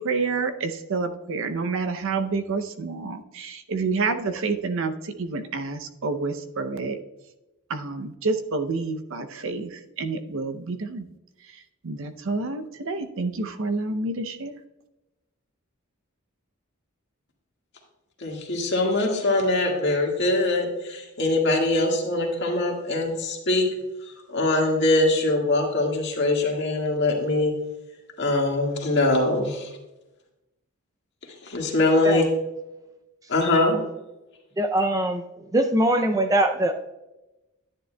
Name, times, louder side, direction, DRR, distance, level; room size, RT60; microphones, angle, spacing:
voice 1, 0.0-7.0 7.7-11.1 11.8-14.5, right 3 dB, 65° right, 9 dB, 0.6 m, -28 dB
voice 2, 18.2-23.7 24.3-27.5 28.2-29.7 31.4-32.2 33.3-33.8, left 2 dB, 55° left, 0 dB, 1.8 m, -22 dB
voice 3, 34.6-35.2 35.5-36.7, right 1 dB, 15° right, 6 dB, 0.4 m, -22 dB
10.5 x 9.7 x 2.2 m, 0.99 s
head